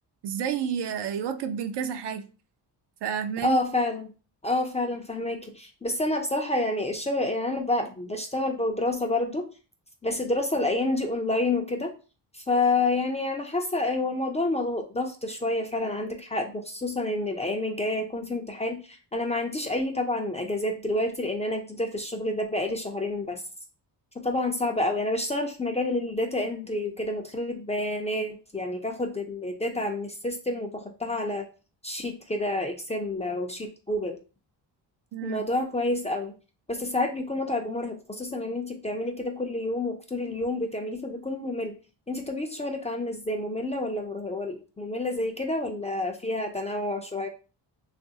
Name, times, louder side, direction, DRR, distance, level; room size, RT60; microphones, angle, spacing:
voice 1, 0.2-2.2 3.0-3.6 35.1-35.4, right 8 dB, 65° right, 0.6 m, -30 dB
voice 2, 3.4-4.1 4.4-9.5 10.0-11.9 12.3-23.4 24.2-31.5 31.8-34.2 35.2-36.4 36.7-41.7 42.1-47.3, left 2 dB, 15° left, 0.4 m, -29 dB
3.0 x 2.4 x 2.7 m
cardioid pair, 85°, 44 cm